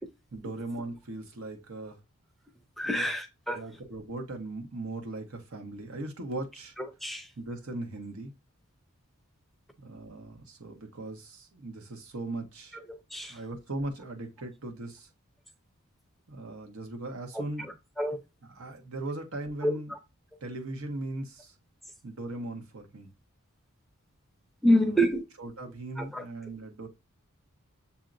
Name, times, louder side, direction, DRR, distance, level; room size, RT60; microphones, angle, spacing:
voice 1, 0.3-2.0 2.8-3.1 3.5-6.7 7.4-8.3 9.8-12.8 13.3-15.1 16.3-17.7 18.5-19.9 20.4-21.5 22.0-23.1 24.8-25.0 25.4-26.9, right 2 dB, 90° right, 1.2 m, -38 dB
voice 2, 2.8-3.6 6.8-7.3 12.9-13.4 17.3-17.4 18.0-18.2 19.6-20.0 24.6-25.2 26.0-26.2, equal, ahead, 0.5 m, -27 dB
7.1 x 2.7 x 2.5 m
head